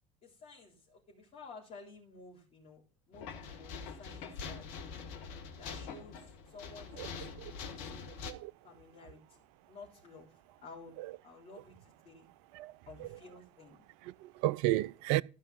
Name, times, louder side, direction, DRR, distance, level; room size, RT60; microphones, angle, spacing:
voice 1, 0.2-2.8 3.1-4.7 5.6-8.1 8.6-12.3 12.9-13.9, left 3 dB, 40° left, 3.8 m, -53 dB
sound 1, 3.1-8.3, left 5 dB, 60° left, 1.7 m, -44 dB
voice 2, 8.1-8.5 11.0-11.1 12.5-12.7 13.0-13.1 14.0-15.2, right 16 dB, 60° right, 0.5 m, -33 dB
14.0 x 5.5 x 5.8 m
figure-of-eight pair, 65°, 16 cm